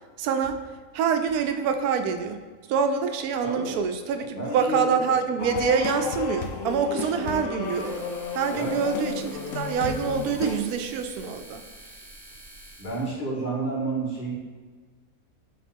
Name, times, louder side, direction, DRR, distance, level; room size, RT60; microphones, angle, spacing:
voice 1, 0.2-0.6 0.9-2.4 2.7-8.1 8.3-11.6, right 6 dB, 90° right, 7 dB, 1.1 m, -26 dB
voice 2, 3.4-3.7 4.4-4.9 8.5-8.9 12.8-14.3, right 2 dB, 35° left, -5 dB, 1.7 m, -30 dB
sound 1, 5.4-10.6, left 5 dB, 65° left, 0.9 m, -32 dB
sound 2, 7.6-13.1, right 1 dB, 35° right, 1.9 m, -47 dB
7.3 x 3.6 x 4.4 m, 1.4 s
omnidirectional pair, 1.5 m